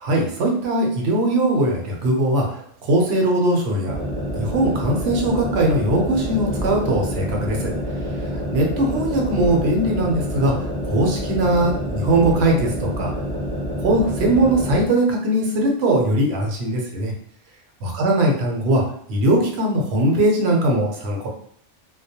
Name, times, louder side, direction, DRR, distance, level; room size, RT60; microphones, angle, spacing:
voice 1, 0.0-4.0 4.4-7.7 8.2-10.5 10.9-13.1 13.8-17.1 17.8-18.8 19.1-21.3, right 1 dB, 65° right, 0 dB, 0.8 m, -20 dB
sound 1, 3.9-14.9, equal, 30° right, 0.7 m, -27 dB
2.3 x 2.1 x 2.7 m, 0.62 s
omnidirectional pair, 1.3 m